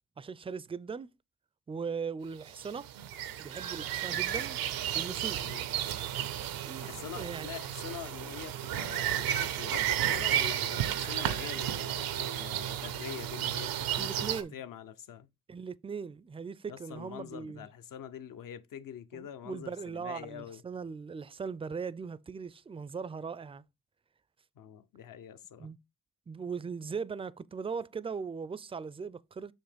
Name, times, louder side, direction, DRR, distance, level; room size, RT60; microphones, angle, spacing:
voice 1, 0.2-1.1 1.7-2.9 3.4-4.6 4.9-5.5 6.6-7.5 14.0-14.6 15.5-17.7 19.1-23.6 25.6-25.8 26.3-29.5, right 5 dB, 15° right, 0.4 m, -39 dB
sound 1, 2.5-14.4, right 11 dB, 85° right, 0.7 m, -33 dB
voice 2, 5.2-5.7 6.8-15.3 16.7-20.6 24.6-25.7, left 9 dB, 70° left, 0.8 m, -45 dB
7.2 x 2.9 x 5.1 m
supercardioid pair, 60°, 34 cm